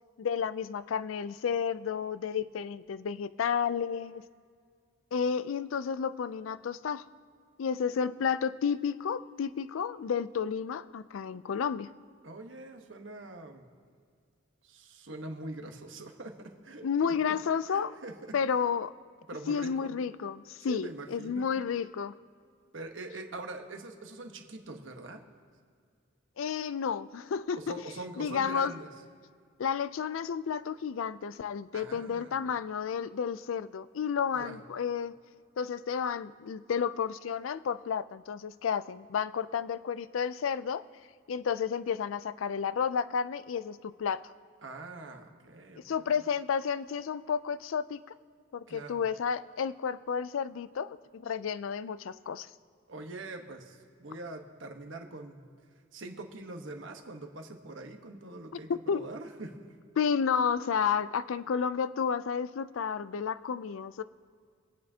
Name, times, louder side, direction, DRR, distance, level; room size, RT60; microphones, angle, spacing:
voice 1, 0.2-4.2 5.1-7.0 7.6-11.9 16.8-17.9 18.3-18.9 19.5-22.1 26.4-27.7 28.2-28.7 29.6-35.2 35.6-40.8 41.3-44.3 45.8-48.0 48.5-52.5 58.7-59.1 60.0-64.0, left 6 dB, 90° left, 15 dB, 0.4 m, -31 dB
voice 2, 12.2-13.7 14.6-17.1 17.7-18.1 19.3-20.1 20.6-21.6 22.7-25.2 27.6-28.9 31.7-32.4 34.3-34.6 44.6-46.0 48.7-49.0 52.9-55.5 55.9-59.7, right 2 dB, 70° right, 4 dB, 1.2 m, -43 dB
26.5 x 8.8 x 2.8 m, 2.1 s
head